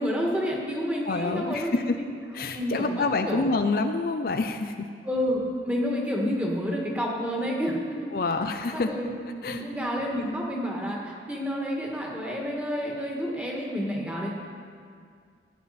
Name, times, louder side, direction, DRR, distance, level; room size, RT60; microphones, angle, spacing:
voice 1, 0.0-2.1 2.5-3.5 5.0-7.8 8.7-9.1 9.5-14.3, equal, 10° right, -2 dB, 1.8 m, -29 dB
voice 2, 1.1-2.0 2.3-4.9 8.1-9.0 9.4-9.6, left 3 dB, 55° left, 7 dB, 0.5 m, -27 dB
16.0 x 9.1 x 4.3 m, 2.1 s
head